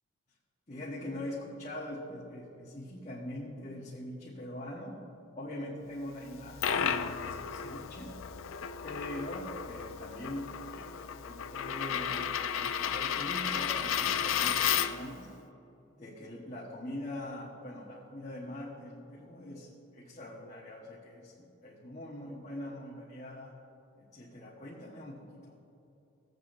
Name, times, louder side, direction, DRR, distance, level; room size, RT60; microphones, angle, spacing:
voice 1, 0.7-5.0 5.3-8.1 8.8-12.2 12.6-15.3 16.0-23.6 24.0-25.6, left 1 dB, 35° left, -6 dB, 1.2 m, -42 dB
Coin (dropping), 6.3-15.1, left 8 dB, 90° left, 0.4 m, -33 dB
17.5 x 7.9 x 2.6 m, 2.8 s
head